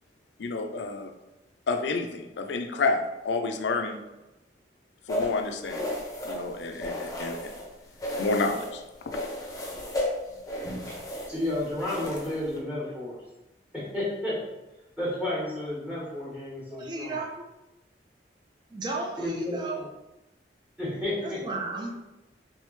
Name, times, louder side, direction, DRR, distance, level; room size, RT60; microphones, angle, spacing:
voice 1, 0.4-1.1 1.7-4.0 5.1-5.9 6.2-7.5 8.2-8.8 9.1-9.3, left 3 dB, 80° left, 6 dB, 0.4 m, -29 dB
sound 1, 5.1-7.7 8.0-8.8 9.1-12.6, left 1 dB, 20° left, 0.7 m, -34 dB
voice 2, 11.3-13.2 13.7-14.3 15.0-17.2 19.2-19.6 20.8-21.4, left 1 dB, 10° right, -8 dB, 1.2 m, -31 dB
voice 3, 16.7-17.4 18.7-19.8 21.2-21.9, right 3 dB, 25° right, -2 dB, 0.6 m, -34 dB
3.4 x 3.1 x 3.2 m, 0.99 s
head